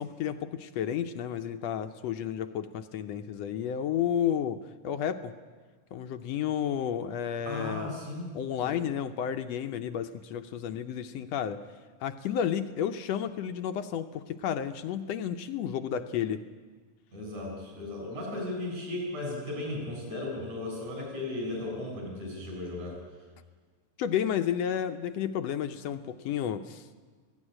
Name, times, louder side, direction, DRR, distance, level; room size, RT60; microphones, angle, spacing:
voice 1, 0.0-5.3 5.9-7.9 8.3-11.6 12.0-16.4 24.0-26.9, left 9 dB, 70° left, 9 dB, 1.6 m, -32 dB
voice 2, 7.5-8.3 8.6-8.8 17.1-23.0, left 2 dB, 65° right, -1 dB, 9.2 m, -36 dB
21.0 x 16.5 x 10.0 m, 1.5 s
omnidirectional pair, 3.6 m